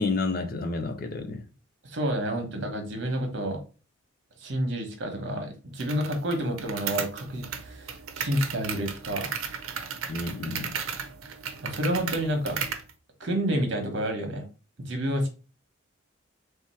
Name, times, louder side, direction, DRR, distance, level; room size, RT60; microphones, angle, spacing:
voice 1, 0.0-1.4 10.1-10.7, left 3 dB, 45° left, 0.5 m, -30 dB
voice 2, 1.8-3.6 4.4-7.9 8.2-9.3 11.6-12.6 13.2-14.4 14.9-15.3, equal, 60° right, 1.1 m, -29 dB
sound 1, 5.8-12.9, right 7 dB, 85° right, 0.6 m, -35 dB
3.4 x 2.9 x 4.3 m
head